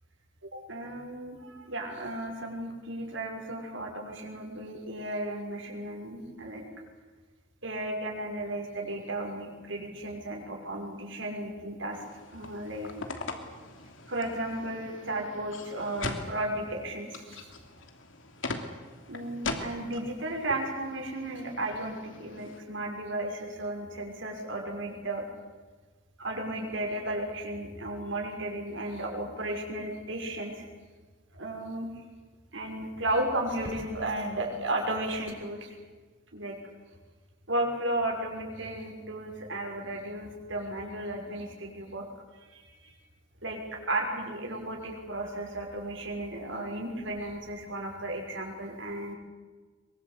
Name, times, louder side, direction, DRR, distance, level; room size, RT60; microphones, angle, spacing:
voice 1, 0.5-6.6 7.6-12.0 12.3-12.9 14.1-17.5 19.1-25.2 26.2-30.7 31.3-31.9 32.5-35.7 36.3-36.5 37.5-42.0 42.5-42.9 43.4-49.1, right 1 dB, 80° right, 1 dB, 6.1 m, -34 dB
sound 1, 11.9-22.6, left 3 dB, 85° left, 2.9 m, -41 dB
23.5 x 23.5 x 8.4 m, 1.4 s
head